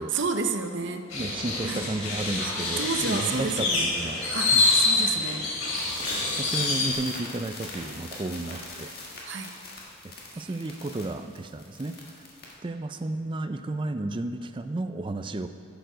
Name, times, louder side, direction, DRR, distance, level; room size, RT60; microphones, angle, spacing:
voice 1, 0.0-1.1 1.6-1.8 2.6-3.9 4.3-5.5 9.2-9.5 10.3-10.5, right 4 dB, 60° right, 6 dB, 0.7 m, -30 dB
sound 1, 1.1-6.9, left 3 dB, 85° left, 2.8 m, -26 dB
voice 2, 1.1-4.2 4.5-4.7 6.0-8.9 10.0-11.9 12.6-15.5, right 2 dB, 25° right, 9 dB, 0.4 m, -33 dB
sound 2, 2.3-4.8 5.1-5.3 5.6-12.5, left 2 dB, 50° left, 1.7 m, -43 dB
12.0 x 7.0 x 5.1 m, 2.5 s
head